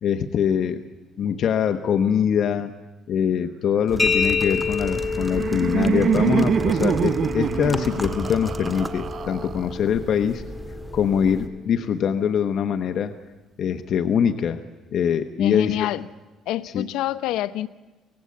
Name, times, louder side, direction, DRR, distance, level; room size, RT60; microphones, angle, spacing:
voice 1, 0.0-0.9 1.2-2.7 3.1-10.4 10.9-13.1 13.6-14.6 14.9-15.9 16.6-16.8, left 8 dB, 55° left, 8 dB, 0.9 m, -23 dB
sound 1, 3.9-11.5, right 1 dB, 5° right, 1.9 m, -35 dB
sound 2, 4.0-11.5, left 5 dB, 20° left, 3.4 m, -29 dB
Laughter, 4.8-9.9, right 7 dB, 45° right, 0.7 m, -25 dB
voice 2, 15.4-16.1 16.5-17.7, left 13 dB, 85° left, 16 dB, 0.7 m, -26 dB
24.5 x 18.0 x 8.5 m, 1.2 s
cardioid pair, 120°, 0 cm